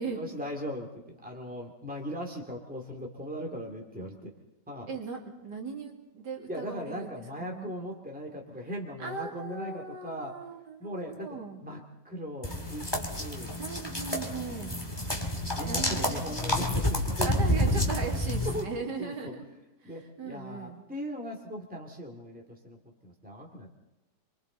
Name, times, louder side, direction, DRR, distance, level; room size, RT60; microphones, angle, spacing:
voice 1, 0.0-4.3 4.7-4.9 6.5-10.4 10.8-13.6 14.5-14.6 15.5-17.4 18.4-19.3 19.8-23.7, equal, 5° right, 1 dB, 2.5 m, -39 dB
voice 2, 4.9-7.7 9.0-11.6 13.6-14.8 15.7-16.2 17.2-19.5 19.8-20.8, right 4 dB, 80° right, 1 dB, 3.2 m, -38 dB
sound 1, 12.4-18.6, left 1 dB, 15° left, 2.2 m, -29 dB
28.5 x 24.0 x 4.0 m, 0.99 s
omnidirectional pair, 1.8 m